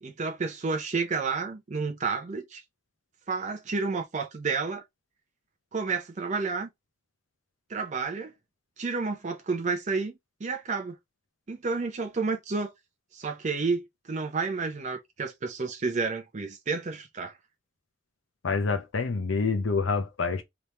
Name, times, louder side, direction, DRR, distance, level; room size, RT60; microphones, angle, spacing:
voice 1, 0.0-2.6 3.3-4.8 5.7-6.7 7.7-8.3 8.8-10.1 10.4-11.0 11.5-12.7 13.1-17.4, right 4 dB, 40° right, 0.5 m, -30 dB
voice 2, 18.4-20.4, left 4 dB, 80° left, 0.7 m, -27 dB
3.4 x 3.0 x 4.0 m
head